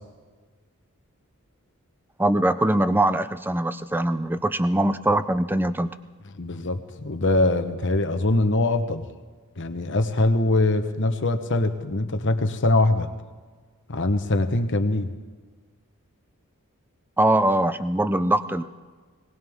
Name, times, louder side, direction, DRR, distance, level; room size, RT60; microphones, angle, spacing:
voice 1, 2.2-5.9 17.2-18.6, right 1 dB, 10° right, 12 dB, 0.5 m, -22 dB
voice 2, 6.4-9.0 9.6-13.1 13.9-15.1, left 2 dB, 55° left, 7 dB, 1.1 m, -23 dB
20.5 x 19.0 x 3.6 m, 1.4 s
head